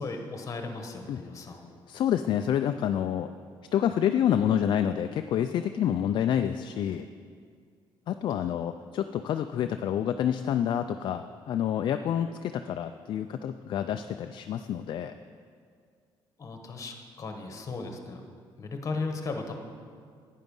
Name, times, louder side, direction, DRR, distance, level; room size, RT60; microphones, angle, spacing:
voice 1, 0.0-1.7 16.4-18.3 18.6-19.5, left 3 dB, 35° left, 4 dB, 1.3 m, -36 dB
voice 2, 1.9-3.3 3.7-7.1 8.1-15.2, left 9 dB, 55° left, 8 dB, 0.4 m, -28 dB
11.5 x 9.2 x 5.4 m, 2.1 s
cardioid pair, 130°, 10 cm